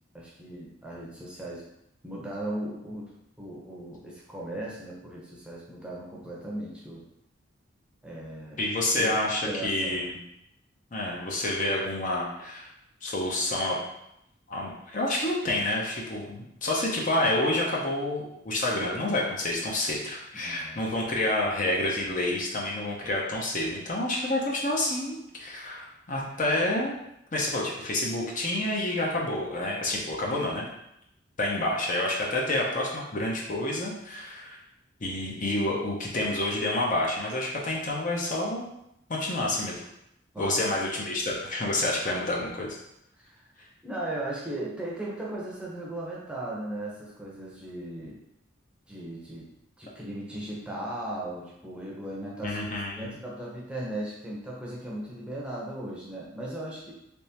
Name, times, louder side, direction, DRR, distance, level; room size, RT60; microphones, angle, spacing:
voice 1, 0.1-1.6 2.0-3.1 3.4-7.0 8.0-8.6 9.0-9.2 9.4-10.0 20.3-20.8 40.3-40.6 43.2-43.5 43.8-48.2 48.9-49.5 49.8-52.6 53.0-56.9, right 1 dB, 5° right, -5 dB, 0.7 m, -37 dB
voice 2, 8.6-10.2 10.9-12.7 13.0-13.8 14.5-27.0 27.3-30.6 31.4-34.6 35.0-38.6 39.1-39.8 40.4-42.8 52.4-53.1, left 1 dB, 40° left, -3 dB, 0.6 m, -28 dB
3.5 x 3.1 x 2.8 m, 0.80 s
head